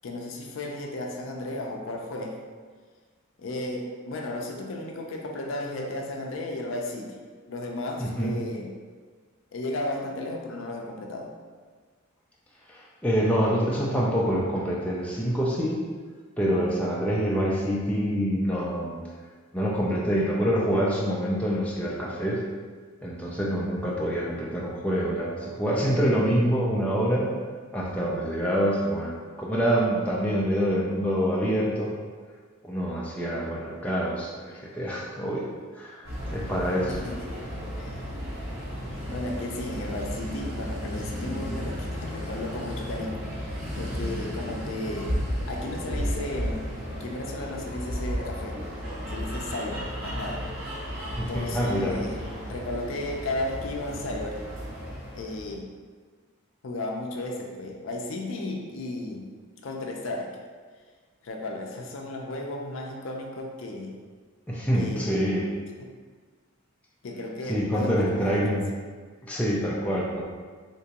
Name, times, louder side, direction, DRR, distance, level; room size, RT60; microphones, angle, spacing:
voice 1, 0.0-2.4 3.4-7.2 7.5-8.7 9.5-11.3 36.9-37.3 37.8-38.0 39.1-45.1 45.5-48.6 49.1-50.5 51.3-54.4 55.1-55.7 56.6-59.3 59.6-60.3 61.2-63.9 64.7-65.1 67.0-68.6, left 2 dB, 70° left, 1 dB, 0.5 m, -34 dB
voice 2, 8.0-8.3 12.7-15.8 16.4-19.0 19.5-22.4 23.0-27.3 27.7-31.9 32.6-35.5 35.7-37.0 51.2-51.9 64.5-65.5 67.5-68.7 69.2-70.2, equal, 5° left, -5 dB, 0.4 m, -26 dB
sound 1, 36.0-55.5, equal, 70° right, 1.1 m, -34 dB
3.4 x 2.9 x 2.8 m, 1.5 s
head